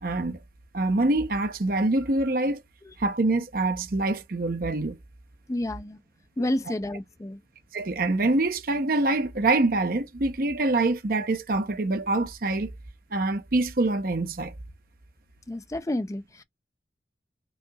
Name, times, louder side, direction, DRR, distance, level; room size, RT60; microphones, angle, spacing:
voice 1, 0.0-0.4 0.7-2.6 3.0-5.0 7.7-12.7 13.1-14.5, right 2 dB, 50° right, 0.7 m, -25 dB
voice 2, 5.5-6.0 6.4-7.4 15.5-16.4, left 1 dB, 20° left, 0.4 m, -30 dB
5.3 x 2.8 x 2.3 m
head